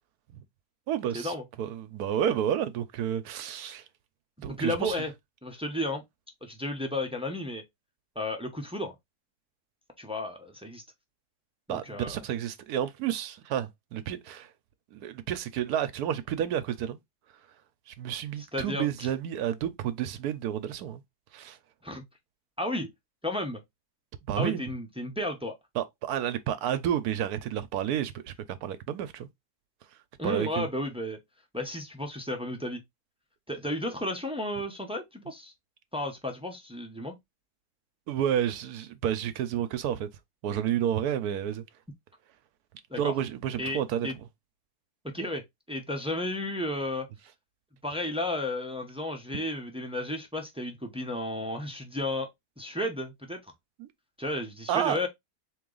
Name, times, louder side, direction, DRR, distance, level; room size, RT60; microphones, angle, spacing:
voice 1, 0.9-3.8 4.4-5.0 11.7-14.5 14.9-17.0 17.9-21.0 21.3-21.6 24.3-24.6 25.8-29.3 30.2-30.7 38.1-40.1 40.4-41.6 42.9-44.2 53.8-53.9 54.7-55.0, right 10 dB, 80° right, 1.1 m, -30 dB
voice 2, 4.4-5.1 5.4-6.0 6.4-7.6 8.1-8.9 10.0-10.8 11.7-12.2 18.4-19.1 21.8-22.0 22.6-22.9 23.2-23.6 24.4-25.6 30.2-31.2 31.5-32.8 33.5-35.5 35.9-37.2 42.9-43.1 43.6-44.1 45.0-47.1 47.8-52.3 52.6-53.4 54.2-55.1, left 1 dB, 5° right, 0.5 m, -33 dB
3.9 x 3.0 x 3.8 m
omnidirectional pair, 1.6 m